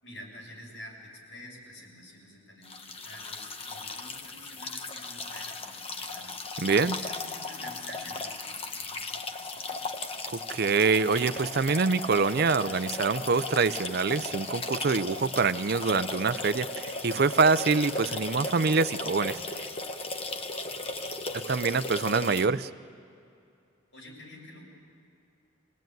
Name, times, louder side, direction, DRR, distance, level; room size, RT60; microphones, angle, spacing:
voice 1, 0.0-6.4 6.8-9.8 23.9-24.6, equal, 85° left, -2 dB, 6.8 m, -48 dB
sound 1, 2.6-22.5, left 3 dB, 30° left, 1.1 m, -36 dB
voice 2, 6.6-7.0 10.3-19.4 21.3-22.7, right 4 dB, 55° right, 14 dB, 0.6 m, -25 dB
26.0 x 18.0 x 9.3 m, 2.5 s
head